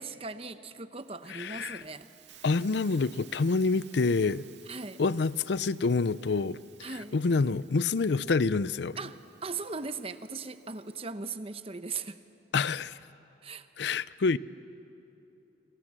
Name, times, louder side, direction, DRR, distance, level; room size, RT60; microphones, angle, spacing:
voice 1, 0.0-2.1 4.7-5.0 6.8-7.2 9.0-12.2 13.4-13.9, right 4 dB, 30° right, 0.9 m, -39 dB
Hiss, 1.0-11.0, right 10 dB, 70° right, 2.1 m, -57 dB
voice 2, 1.3-1.8 2.4-4.5 5.0-6.6 7.1-9.0 12.5-13.0 13.8-14.4, left 4 dB, 70° left, 0.5 m, -27 dB
30.0 x 26.0 x 7.5 m
head